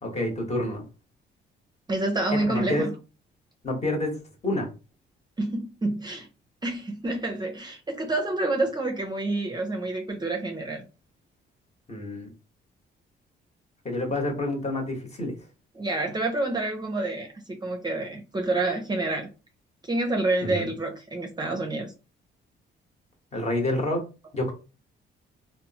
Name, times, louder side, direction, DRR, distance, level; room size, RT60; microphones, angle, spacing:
voice 1, 0.0-0.8 2.3-2.9 3.6-4.7 11.9-12.3 13.8-15.3 20.4-20.7 23.3-24.0 24.3-24.5, left 1 dB, 35° left, 1.1 m, -28 dB
voice 2, 1.9-2.9 5.4-6.3 6.6-10.8 15.8-19.3 19.8-21.9, right 2 dB, 20° right, 0.6 m, -28 dB
2.9 x 2.0 x 2.7 m
cardioid pair, 90°, 20 cm